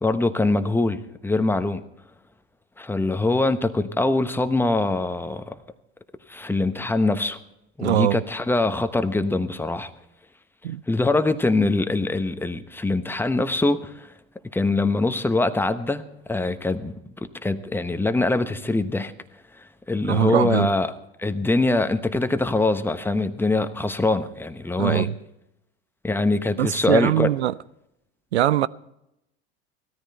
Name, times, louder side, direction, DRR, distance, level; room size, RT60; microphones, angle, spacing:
voice 1, 0.0-1.8 2.8-5.5 6.3-7.4 7.8-9.9 10.9-14.1 14.5-16.0 16.3-16.9 17.4-19.1 19.9-20.9 21.2-25.1 26.0-27.3, left 2 dB, 5° left, 1.1 m, -23 dB
voice 2, 7.8-8.2 10.6-10.8 20.1-20.7 24.8-25.1 26.6-27.5 28.3-28.7, right 12 dB, 85° right, 0.5 m, -22 dB
17.0 x 13.5 x 4.4 m
hypercardioid pair, 75°, 32 cm